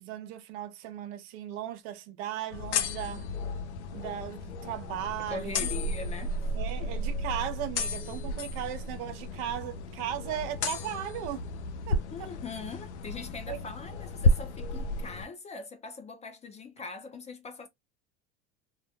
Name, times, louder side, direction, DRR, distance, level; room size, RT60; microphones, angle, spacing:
voice 1, 0.0-3.3 3.9-5.8 6.5-11.4 11.9-12.3 13.5-13.6, right 11 dB, 60° right, 0.6 m, -37 dB
sound 1, 2.5-15.3, left 2 dB, 75° left, 0.6 m, -32 dB
voice 2, 5.2-6.3 6.8-6.9 12.1-17.7, left 4 dB, 20° left, 0.4 m, -41 dB
2.2 x 2.1 x 2.7 m
hypercardioid pair, 90°, 34 cm